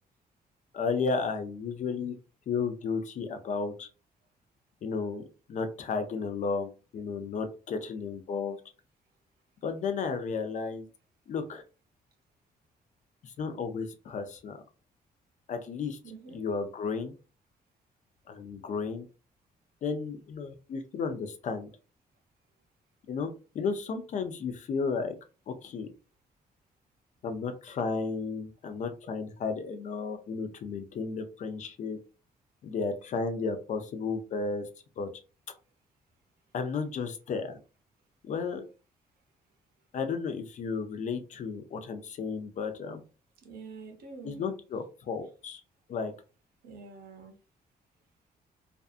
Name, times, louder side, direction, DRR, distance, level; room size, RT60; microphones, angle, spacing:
voice 1, 0.7-2.1 2.5-3.9 4.8-5.2 5.5-8.6 9.6-10.9 11.3-11.6 13.2-14.6 15.5-16.0 16.3-17.1 18.3-19.1 19.8-21.7 23.1-23.3 23.5-25.1 25.5-25.9 27.2-32.0 32.6-34.7 35.0-35.1 36.5-37.6 38.2-38.7 39.9-43.0 44.2-45.6 45.9-46.1, left 5 dB, 50° left, 7 dB, 0.4 m, -33 dB
voice 2, 16.0-16.4 43.4-44.4 46.6-47.3, right 4 dB, 75° right, 5 dB, 0.8 m, -46 dB
2.5 x 2.3 x 2.4 m, 0.34 s
cardioid pair, 145°, 16 cm